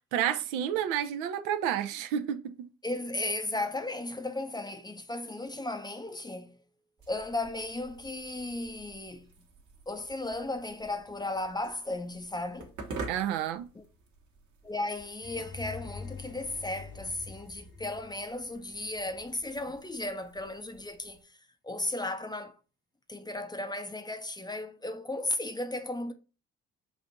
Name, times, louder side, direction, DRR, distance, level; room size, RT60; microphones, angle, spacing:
voice 1, 0.1-2.7 13.1-13.7, right 10 dB, 70° right, 0.5 m, -30 dB
voice 2, 2.8-6.6 7.1-9.3 9.9-12.7 13.7-13.8 14.6-21.4 21.6-22.5 23.1-26.1, left 2 dB, 10° left, 0.5 m, -35 dB
sound 1, 7.0-21.2, right 3 dB, 50° right, 1.1 m, -49 dB
sound 2, 15.2-19.1, left 4 dB, 40° left, 0.8 m, -45 dB
5.9 x 2.5 x 2.5 m
hypercardioid pair, 45°, 38 cm